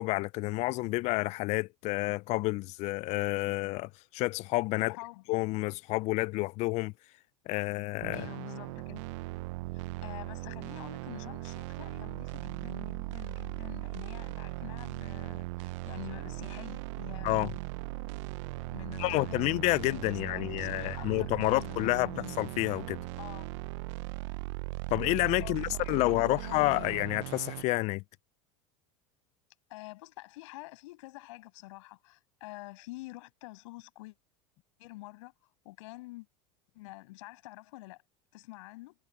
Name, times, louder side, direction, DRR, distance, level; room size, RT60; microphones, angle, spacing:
voice 1, 0.0-4.9 5.3-6.9 7.5-8.3 17.2-17.5 19.0-23.0 24.9-28.0, left 21 dB, 45° left, 0.4 m, -29 dB
voice 2, 4.8-5.2 8.1-9.1 9.7-17.3 18.7-22.3 23.2-23.5 25.4-26.9 29.7-34.2 34.8-36.3 36.7-38.0 38.3-39.0, left 21 dB, 75° left, 6.9 m, -47 dB
sound 1, 8.0-27.6, right 21 dB, 70° right, 0.7 m, -39 dB
supercardioid pair, 120°, 16 cm